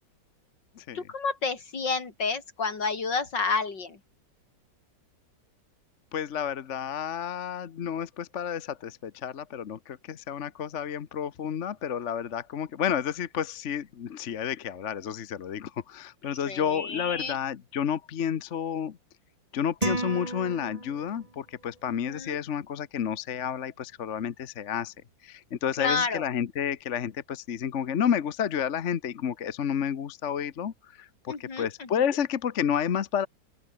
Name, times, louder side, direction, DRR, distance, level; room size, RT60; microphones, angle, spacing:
voice 1, 0.9-4.0 16.5-17.4 21.9-22.4 25.8-26.2 31.3-32.0, left 4 dB, 65° left, 3.9 m, -30 dB
voice 2, 6.1-19.0 19.5-24.9 25.2-30.7 31.3-33.3, left 8 dB, 45° left, 1.1 m, -30 dB
sound 1, 19.8-21.3, right 2 dB, 20° right, 2.4 m, -32 dB
open air
omnidirectional pair, 2.1 m